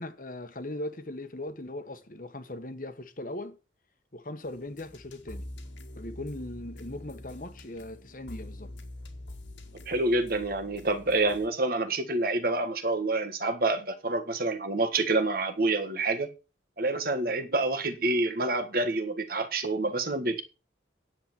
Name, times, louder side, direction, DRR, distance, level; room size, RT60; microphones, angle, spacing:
voice 1, 0.0-3.6 4.1-5.5 6.0-8.7, left 1 dB, 45° left, 1.3 m, -39 dB
sound 1, 4.4-11.5, left 1 dB, 85° left, 2.1 m, -45 dB
voice 2, 9.9-16.3 16.8-20.4, right 2 dB, 50° right, 1.6 m, -27 dB
9.9 x 7.6 x 6.0 m
head